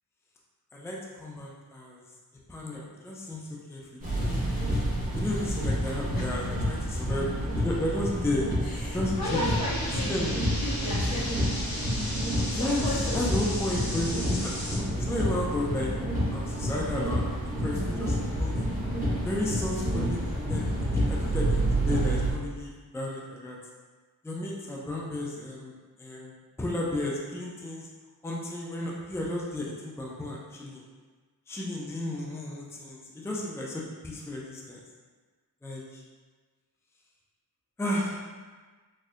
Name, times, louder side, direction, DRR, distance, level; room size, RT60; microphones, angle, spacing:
voice 1, 0.7-2.0 2.5-3.8 4.1-4.8 5.1-7.3 7.6-8.4 8.9-9.6 9.9-10.5 12.5-15.9 16.3-17.3 17.6-18.6 19.2-23.6 24.2-25.7 26.0-26.3 26.6-27.9 28.2-30.8 31.5-34.8 35.6-36.0 37.8-38.2, left 1 dB, 5° left, -3 dB, 0.4 m, -33 dB
sound 1, 4.0-22.3, equal, 20° right, 1.3 m, -29 dB
voice 2, 5.8-6.3 8.6-10.3 10.6-11.5 12.0-13.5, left 1 dB, 65° left, -6 dB, 1.0 m, -34 dB
sound 2, 9.2-14.8, left 1 dB, 50° left, 0.8 m, -36 dB
4.2 x 2.7 x 2.4 m, 1.4 s
wide cardioid pair, 90°, 37 cm